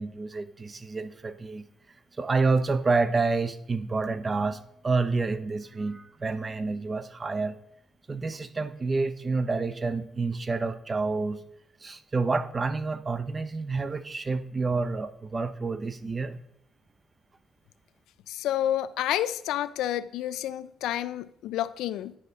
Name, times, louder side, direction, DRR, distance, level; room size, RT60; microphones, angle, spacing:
voice 1, 0.0-1.7 2.2-7.6 8.1-11.4 11.8-16.4, right 3 dB, 30° right, 12 dB, 0.6 m, -28 dB
voice 2, 18.3-22.2, left 12 dB, 90° left, 14 dB, 0.3 m, -29 dB
9.8 x 4.8 x 4.0 m, 0.75 s
cardioid pair, 90°, 0 cm